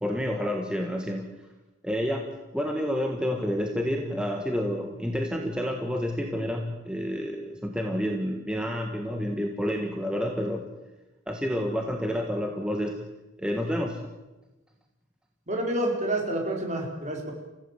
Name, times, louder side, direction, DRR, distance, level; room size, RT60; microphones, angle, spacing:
voice 1, 0.0-1.3 1.8-10.6 11.3-13.0 13.4-14.0, equal, 5° right, 2 dB, 1.6 m, -29 dB
voice 2, 15.5-17.3, right 1 dB, 35° right, 1 dB, 4.7 m, -28 dB
29.5 x 16.0 x 7.6 m, 1.1 s
head